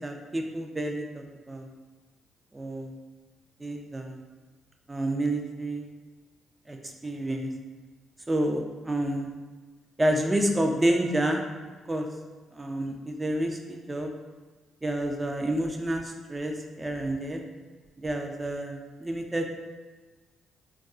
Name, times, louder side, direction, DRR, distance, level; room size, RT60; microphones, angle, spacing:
voice 1, 0.0-1.7 2.5-3.0 3.6-4.2 4.9-5.8 6.7-6.8 7.0-7.5 8.3-9.3 10.0-11.4 11.9-12.1 12.5-14.1 14.8-17.4 18.0-19.6, right 1 dB, 15° right, 3 dB, 0.4 m, -29 dB
2.3 x 2.3 x 3.6 m, 1.3 s
cardioid pair, 90°, 0 cm